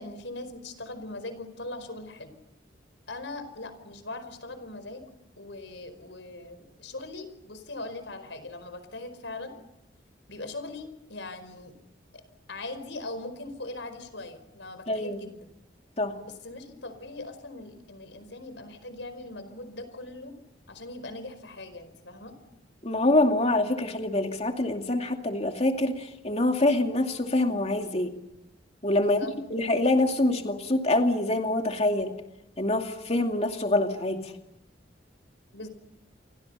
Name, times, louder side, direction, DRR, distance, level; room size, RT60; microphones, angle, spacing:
voice 1, 0.0-2.3 3.1-5.1 5.4-9.5 10.3-11.8 12.5-15.4 16.2-20.3 20.7-22.3 29.0-29.3 35.5-35.7, left 2 dB, 80° left, 11 dB, 4.9 m, -40 dB
voice 2, 14.9-15.2 16.0-16.1 22.8-28.1 28.8-29.2 29.5-32.1 32.6-34.3, left 2 dB, 35° left, 4 dB, 2.5 m, -25 dB
29.5 x 25.0 x 5.6 m, 0.88 s
head